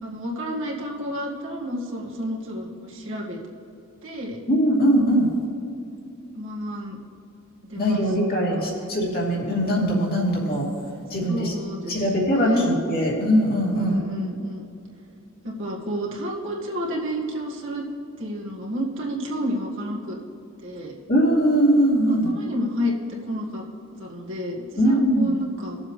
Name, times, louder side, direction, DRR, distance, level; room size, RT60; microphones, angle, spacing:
voice 1, 0.0-3.4 4.0-4.4 6.3-7.0 7.7-8.0 8.6-8.9 11.3-12.8 13.7-14.6 15.4-17.8 18.2-20.2 20.6-20.9 22.1-22.9 23.2-23.6 24.0-25.8, equal, 60° right, -3 dB, 1.8 m, -30 dB
voice 2, 4.5-5.3 7.7-10.7 11.1-11.5 11.9-14.0 21.1-22.3 24.8-25.3, equal, 45° left, -4 dB, 2.7 m, -21 dB
19.5 x 7.4 x 3.3 m, 2.8 s
head